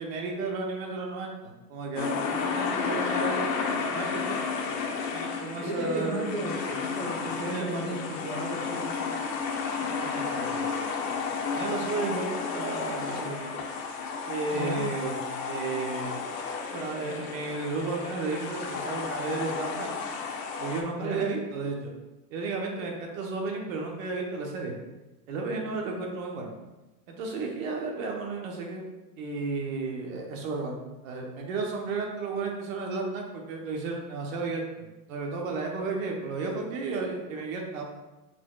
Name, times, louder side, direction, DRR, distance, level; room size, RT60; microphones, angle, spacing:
voice 1, 0.0-4.5 5.1-6.4 6.7-6.9 7.5-8.2 9.8-10.7 11.5-13.7 14.3-15.1 15.5-16.1 16.7-19.9 20.6-21.9 22.3-24.8 25.3-26.5 27.1-28.8 29.2-37.8, right 3 dB, 55° right, 1 dB, 1.0 m, -33 dB
sound 1, 2.0-20.8, left 5 dB, 85° left, 0.9 m, -32 dB
voice 2, 5.6-9.0 14.5-14.8 21.0-21.2, right 1 dB, 40° right, -3 dB, 1.3 m, -34 dB
4.4 x 4.3 x 2.3 m, 1.1 s
supercardioid pair, 150°, 48 cm